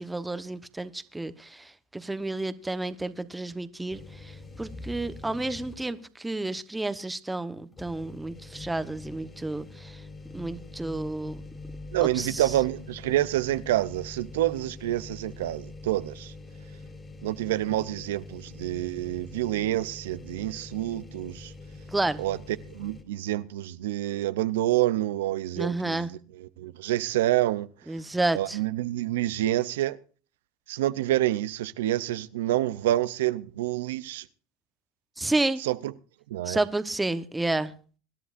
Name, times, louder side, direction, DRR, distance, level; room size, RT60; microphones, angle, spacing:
voice 1, 0.0-10.0 10.3-11.4 12.0-12.5 21.9-22.2 25.6-26.1 27.9-28.6 35.2-35.6 36.5-37.7, right 2 dB, 10° right, 1.0 m, -31 dB
sound 1, 3.9-6.1 6.5-6.6 7.7-23.0, left 3 dB, 20° left, 3.5 m, -44 dB
voice 2, 11.9-16.3 17.2-21.5 22.2-22.4 22.7-26.1 26.4-27.7 28.3-30.0 30.7-34.2 35.6-35.8 36.3-36.6, right 14 dB, 90° right, 0.5 m, -27 dB
25.0 x 11.0 x 2.5 m
supercardioid pair, 105°, 0 cm